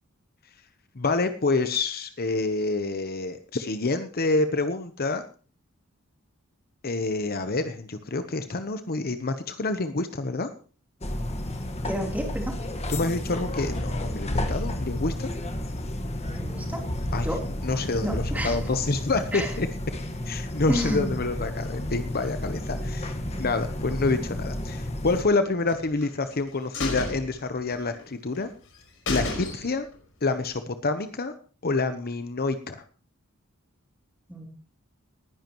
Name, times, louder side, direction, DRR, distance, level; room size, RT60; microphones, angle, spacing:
voice 1, 0.9-5.2 6.8-10.5 12.9-15.3 17.1-19.7 20.3-28.5 29.1-29.9 30.2-31.3 31.6-32.8, left 3 dB, 45° left, 9 dB, 0.9 m, -27 dB
sound 1, 11.0-25.2, left 1 dB, 30° left, 1.6 m, -31 dB
voice 2, 11.8-12.6 16.4-16.8 17.2-17.4 18.0-18.6 19.3-19.5 20.7-21.2 34.3-34.5, equal, 10° right, 0 dB, 3.5 m, -30 dB
sound 2, 25.7-26.3 26.7-28.0 28.3-28.4 28.7-28.8 29.1-30.0 30.3-30.4, left 2 dB, 65° left, 5.1 m, -32 dB
20.0 x 10.5 x 3.1 m, 0.38 s
head